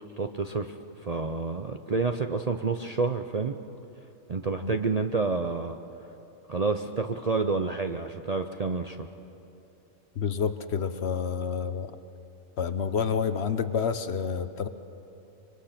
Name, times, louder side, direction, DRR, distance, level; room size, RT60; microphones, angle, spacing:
voice 1, 0.2-0.7 1.0-3.6 4.3-5.8 6.5-9.1, right 4 dB, 40° right, 6 dB, 0.5 m, -29 dB
voice 2, 10.2-12.0 12.6-14.7, left 6 dB, 55° left, 11 dB, 1.0 m, -29 dB
25.0 x 24.0 x 5.9 m, 2.9 s
omnidirectional pair, 1.4 m